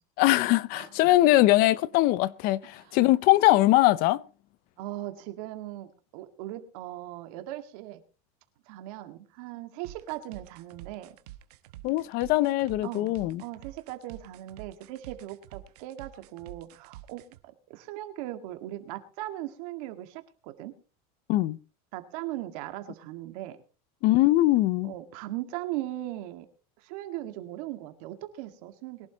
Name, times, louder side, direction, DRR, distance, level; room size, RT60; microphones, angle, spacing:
voice 1, 0.2-4.2 11.8-13.4 21.3-21.6 24.0-24.9, left 17 dB, 50° left, 0.6 m, -22 dB
voice 2, 4.8-8.0 8.7-11.2 12.8-20.7 21.9-23.6 24.8-26.5 26.8-29.1, right 15 dB, 65° right, 2.0 m, -39 dB
sound 1, 9.8-17.4, right 15 dB, 85° right, 1.1 m, -48 dB
22.0 x 11.5 x 3.0 m
supercardioid pair, 140°, 20 cm